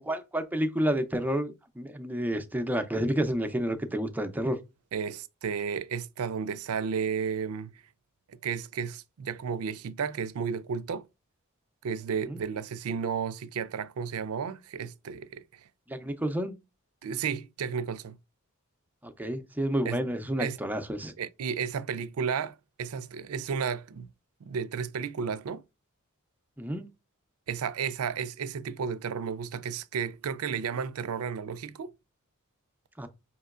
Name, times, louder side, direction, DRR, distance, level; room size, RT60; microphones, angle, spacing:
voice 1, 0.0-4.6 12.3-12.4 15.9-16.5 19.0-21.1 26.6-26.9 33.0-33.1, equal, 10° right, 0.5 m, -30 dB
voice 2, 4.9-7.7 8.4-11.1 11.8-15.4 17.0-18.2 19.9-20.0 20.4-20.6 21.2-24.1 24.4-25.6 27.5-31.9, right 6 dB, 85° right, 0.4 m, -33 dB
5.4 x 2.9 x 2.4 m
head